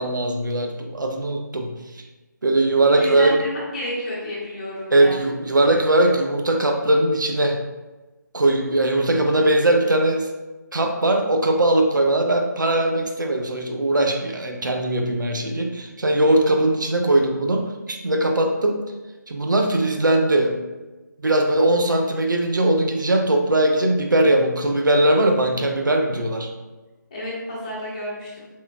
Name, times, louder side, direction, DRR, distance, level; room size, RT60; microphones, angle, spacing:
voice 1, 0.0-2.0 2.4-3.4 4.9-7.6 8.3-10.3 10.7-18.8 19.3-20.6 21.2-26.5, right 1 dB, 75° right, 3 dB, 0.5 m, -20 dB
voice 2, 2.9-5.2 27.1-28.5, left 1 dB, 20° left, -7 dB, 1.0 m, -30 dB
4.4 x 3.4 x 2.3 m, 1.2 s
figure-of-eight pair, 155°, 10 cm